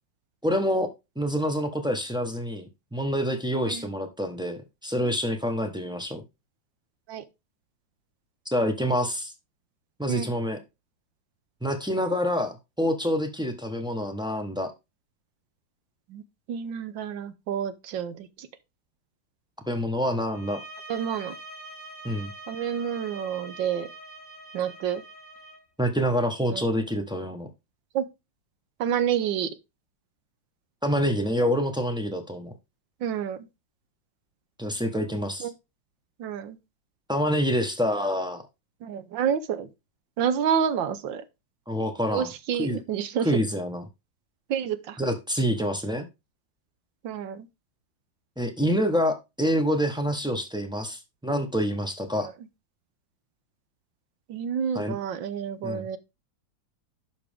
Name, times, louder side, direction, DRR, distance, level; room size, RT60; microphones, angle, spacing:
voice 1, 0.4-6.2 8.5-9.3 10.0-10.6 11.6-14.7 19.7-20.6 22.0-22.3 25.8-27.5 30.8-32.5 34.6-35.5 37.1-38.5 41.7-42.3 42.6-42.8 43.2-43.8 45.0-46.1 48.4-52.3 54.7-55.0 55.6-55.9, equal, 5° right, 0.6 m, -27 dB
voice 2, 16.5-18.5 20.9-21.3 22.5-23.9 24.5-25.0 26.5-26.6 27.9-28.0 28.8-29.5 33.0-33.4 35.4-35.5 36.2-36.6 38.8-39.7 40.2-41.2 42.1-43.3 44.5-45.0 47.0-47.5 52.2-52.3 54.3-56.0, right 8 dB, 75° right, 1.4 m, -29 dB
sound 1, 20.3-25.6, right 1 dB, 25° left, 4.0 m, -44 dB
11.5 x 5.1 x 3.5 m
omnidirectional pair, 2.2 m